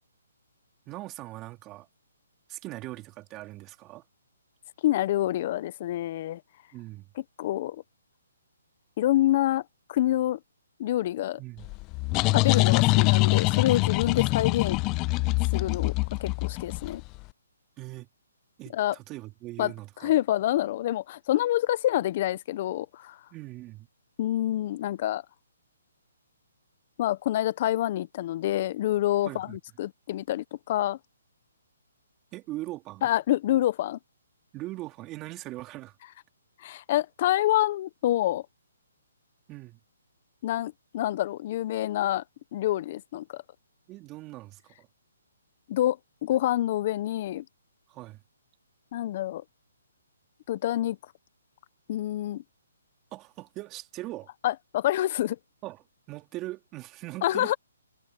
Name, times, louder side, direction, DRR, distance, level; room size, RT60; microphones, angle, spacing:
voice 1, 0.9-1.9 2.5-4.0 6.7-7.1 11.4-11.7 17.8-18.1 18.6-20.1 23.3-23.9 29.2-29.6 32.3-33.1 34.5-36.0 39.5-39.8 43.9-44.9 47.9-48.2 53.1-54.3 55.6-57.6, right 18 dB, 20° right, 3.5 m, -40 dB
voice 2, 4.8-6.4 7.4-7.8 9.0-9.6 9.9-10.4 10.8-11.4 12.3-14.8 15.5-15.9 16.2-17.0 18.7-18.9 19.6-19.7 20.0-23.2 24.2-25.2 27.0-31.0 33.0-34.0 36.6-38.4 40.4-42.2 42.5-43.4 45.7-47.4 48.9-49.4 50.5-51.0 51.9-52.4 54.4-55.4 57.2-57.6, left 13 dB, 40° left, 0.8 m, -27 dB
sound 1, 11.6-17.2, left 24 dB, 25° left, 0.3 m, -24 dB
hypercardioid pair, 150°, 0 cm